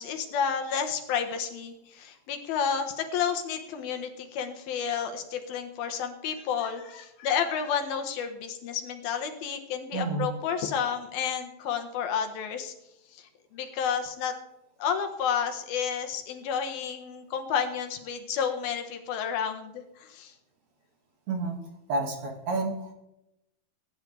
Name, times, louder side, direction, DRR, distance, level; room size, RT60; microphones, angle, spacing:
voice 1, 0.0-12.7 13.1-14.3 14.8-20.3, left 7 dB, 85° left, 6 dB, 3.4 m, -31 dB
voice 2, 9.9-10.4 21.3-21.6 21.9-22.9, right 3 dB, 55° right, 2 dB, 3.3 m, -30 dB
22.5 x 11.0 x 3.4 m, 0.87 s
omnidirectional pair, 4.2 m